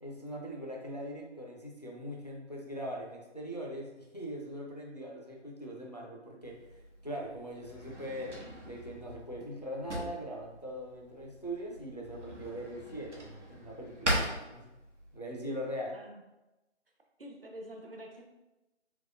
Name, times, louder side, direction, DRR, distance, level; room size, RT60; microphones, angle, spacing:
voice 1, 0.0-14.6 15.1-16.0, equal, 35° left, -1 dB, 0.4 m, -41 dB
Drawer open or close, 6.4-15.2, right 1 dB, 90° right, 1.0 m, -40 dB
voice 2, 15.9-16.2 17.2-18.2, equal, 55° right, 2 dB, 0.6 m, -46 dB
3.4 x 3.0 x 2.5 m, 1.0 s
figure-of-eight pair, 165°, 35 cm